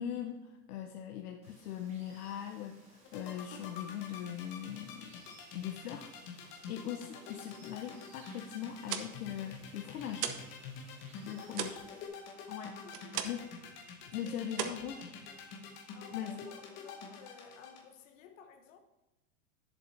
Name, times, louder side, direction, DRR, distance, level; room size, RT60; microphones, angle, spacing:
voice 1, 0.0-5.2 5.5-6.1 6.4-10.3 11.0-11.8 12.5-13.5 14.1-15.0 16.1-16.5, left 10 dB, 70° left, 0.8 m, -41 dB
Water, 1.4-12.1, right 2 dB, 15° right, 1.0 m, -62 dB
sound 1, 3.0-17.8, left 6 dB, 25° left, 1.0 m, -47 dB
sound 2, 8.7-10.6 10.9-13.6 13.9-14.2 14.5-15.6, right 9 dB, 70° right, 1.0 m, -39 dB
voice 2, 11.4-12.1 12.8-13.3 14.2-18.8, left 6 dB, 55° left, 1.1 m, -57 dB
10.5 x 7.4 x 3.3 m
supercardioid pair, 180°, 47 cm